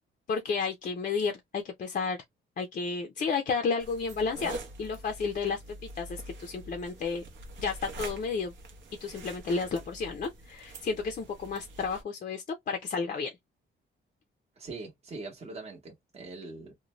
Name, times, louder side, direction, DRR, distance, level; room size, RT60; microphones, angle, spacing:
voice 1, 0.3-2.2 2.6-7.3 7.6-8.5 9.0-13.3, left 5 dB, 40° left, 0.5 m, -32 dB
sound 1, 3.8-12.0, right 2 dB, 60° right, 0.7 m, -45 dB
voice 2, 14.6-16.7, right 3 dB, 30° right, 0.8 m, -42 dB
2.5 x 2.1 x 2.9 m
wide cardioid pair, 175°, 21 cm